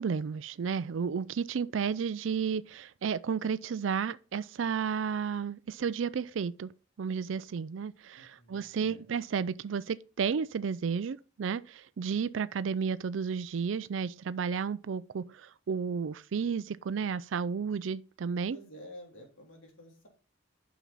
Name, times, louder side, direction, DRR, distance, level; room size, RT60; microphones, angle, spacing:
voice 1, 0.0-6.7 7.0-18.6, right 6 dB, 80° right, 0.4 m, -32 dB
voice 2, 8.1-9.0 18.5-20.1, equal, 90° left, 3.3 m, -51 dB
9.1 x 6.1 x 4.0 m
head